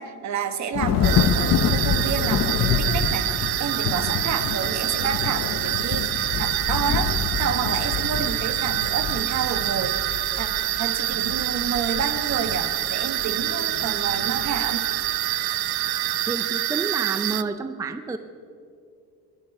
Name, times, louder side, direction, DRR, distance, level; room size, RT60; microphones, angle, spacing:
voice 1, 0.0-10.5 10.8-14.8, right 7 dB, 50° right, 10 dB, 1.3 m, -30 dB
Thunder / Rain, 0.7-16.3, left 7 dB, 45° left, 0.8 m, -28 dB
sound 1, 1.0-17.4, right 16 dB, 85° right, 0.7 m, -26 dB
voice 2, 16.3-18.2, right 4 dB, 10° right, 11 dB, 0.4 m, -29 dB
21.0 x 10.5 x 5.9 m, 2.5 s
cardioid pair, 140°, 36 cm